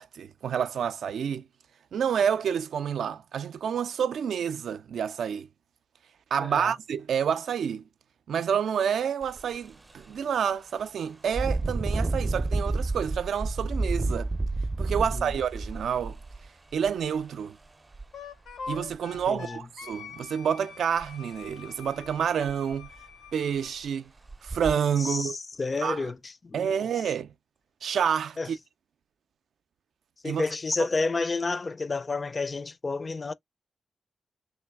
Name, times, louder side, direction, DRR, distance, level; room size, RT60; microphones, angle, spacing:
voice 1, 0.0-1.4 1.9-5.5 6.3-7.8 8.3-14.3 14.8-16.2 16.7-17.6 18.7-22.9 23.3-24.1 24.4-25.4 25.8-26.0 26.5-27.3 27.8-28.6 30.2-30.4, right 8 dB, 85° right, 0.4 m, -28 dB
voice 2, 6.4-6.7 15.1-15.3 19.3-19.6 25.0-26.7 28.4-28.5 30.2-33.3, left 3 dB, 40° left, 0.4 m, -30 dB
Engine, 9.2-9.4 9.9-10.0 11.3-17.1 17.9-18.0 18.5-19.2 21.0-21.1 21.5-21.6 22.1-22.2 22.5-23.0 23.6-23.7 24.3-24.7, right 2 dB, 30° right, 0.5 m, -30 dB
Wind instrument woodwind instrument, 18.1-23.8, left 5 dB, 90° left, 0.8 m, -44 dB
3.1 x 3.1 x 3.4 m
cardioid pair, 60°, 0 cm